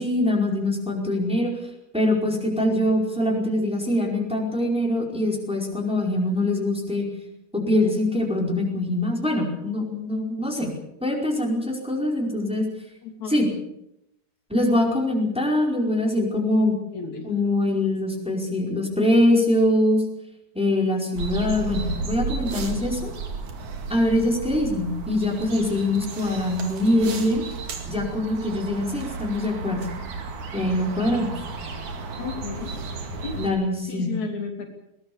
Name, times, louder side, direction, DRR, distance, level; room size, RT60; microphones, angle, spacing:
voice 1, 0.0-1.5 1.9-7.0 7.5-10.7 11.0-12.6 13.3-13.5 14.5-16.8 17.2-20.0 20.5-23.1 23.9-27.4 27.9-29.9 30.5-31.3 33.4-34.1, left 1 dB, ahead, -1 dB, 4.6 m, -23 dB
voice 2, 13.0-13.4 16.9-17.3 32.2-32.7 33.2-33.4 33.9-34.7, left 5 dB, 65° left, 3 dB, 4.1 m, -33 dB
sound 1, 21.2-33.5, right 4 dB, 70° right, 3.7 m, -33 dB
22.0 x 19.0 x 7.0 m, 0.83 s
omnidirectional pair, 3.6 m